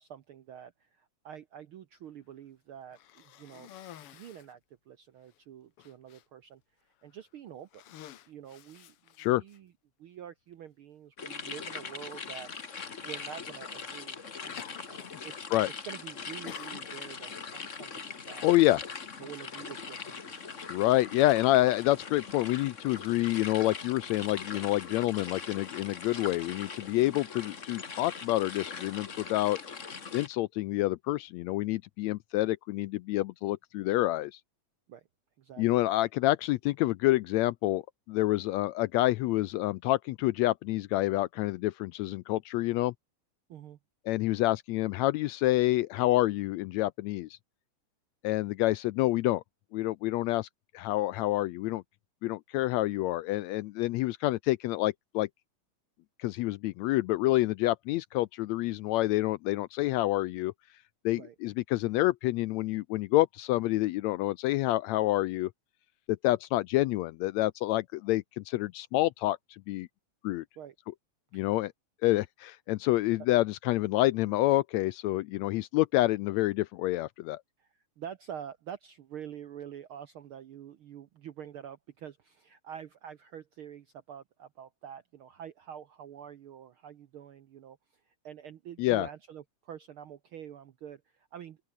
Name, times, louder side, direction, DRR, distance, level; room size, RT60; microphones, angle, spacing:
voice 1, 0.0-4.6 4.9-6.6 7.0-7.8 8.3-9.7 10.0-15.5 15.9-18.5 19.2-20.6 34.9-35.0 35.4-35.6 35.9-36.1 43.5-43.8 61.1-61.3 70.6-70.7 71.3-71.5 77.6-91.6, right 9 dB, 70° right, 1.3 m, -47 dB
Cough, 2.9-4.6 5.3-5.4 5.8-6.2 7.0-7.2 7.6-9.6 10.5-10.6 12.4-12.7 13.1-13.4 14.6-15.2 15.5-15.9 16.5-17.2, left 12 dB, 60° left, 1.6 m, -50 dB
sound 1, 11.2-30.3, left 5 dB, 35° left, 1.3 m, -41 dB
voice 2, 18.4-18.8 20.7-29.6 30.1-34.4 35.6-37.8 38.1-42.9 44.1-47.4 48.2-49.4 49.7-50.5 50.7-51.8 52.2-55.3 56.2-60.5 61.0-65.5 66.1-69.4 69.7-69.9 70.2-70.4 71.3-71.7 72.0-77.4 88.8-89.1, left 17 dB, 80° left, 1.6 m, -28 dB
open air
omnidirectional pair, 3.5 m